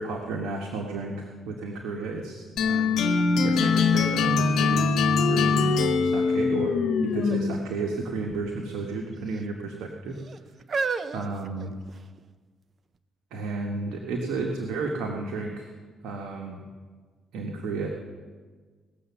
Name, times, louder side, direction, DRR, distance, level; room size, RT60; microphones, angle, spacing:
voice 1, 0.0-2.9 3.3-6.7 7.0-10.2 11.1-11.7 13.3-15.7 16.0-16.6 17.3-17.9, right 3 dB, 85° right, 1 dB, 1.3 m, -32 dB
sound 1, 2.6-7.7, left 4 dB, 75° left, 1.0 m, -23 dB
sound 2, 3.1-3.2 3.7-5.2 5.8-6.3 7.1-7.5 7.8-7.9 8.8-9.4 10.1-12.2 12.9-13.0, right 4 dB, 45° right, 0.6 m, -35 dB
17.5 x 7.0 x 7.0 m, 1.5 s
cardioid pair, 90°, 0 cm